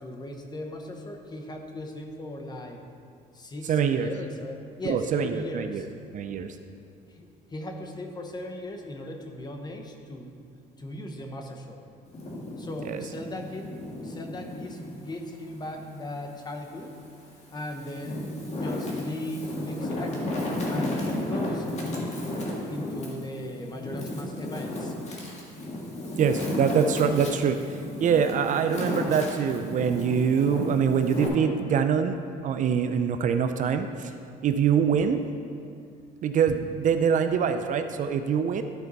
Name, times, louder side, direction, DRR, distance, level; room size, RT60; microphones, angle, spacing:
voice 1, 0.0-2.8 3.3-5.9 7.1-10.3 10.8-11.8 12.6-16.9 17.5-20.3 20.7-22.2 22.7-24.9, left 1 dB, 25° left, 3 dB, 0.9 m, -38 dB
voice 2, 3.7-4.1 4.8-5.9 6.1-6.6 12.9-13.0 26.2-34.1 34.4-35.2 36.2-38.6, right 7 dB, 50° right, 8 dB, 0.4 m, -24 dB
Wind, 12.1-14.9 15.4-16.7 17.3-31.3, left 1 dB, 40° left, 1.7 m, -33 dB
12.5 x 4.5 x 4.0 m, 2.3 s
cardioid pair, 110°, 17 cm